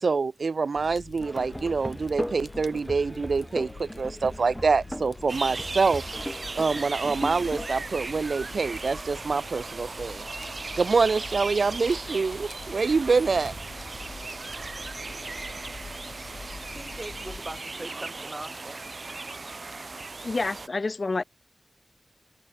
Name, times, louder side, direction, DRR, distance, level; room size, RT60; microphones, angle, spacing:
voice 1, 0.0-10.3 10.8-13.5, right 4 dB, 70° right, 1.8 m, -26 dB
Fire, 0.8-17.6, left 4 dB, 65° left, 4.2 m, -45 dB
sound 1, 1.2-7.7, equal, ahead, 6.8 m, -38 dB
sound 2, 5.3-20.7, right 3 dB, 50° right, 1.8 m, -37 dB
voice 2, 16.7-18.9, right 2 dB, 25° right, 6.8 m, -40 dB
voice 3, 20.2-21.2, left 3 dB, 50° left, 0.9 m, -28 dB
wide cardioid pair, 80°, 0 cm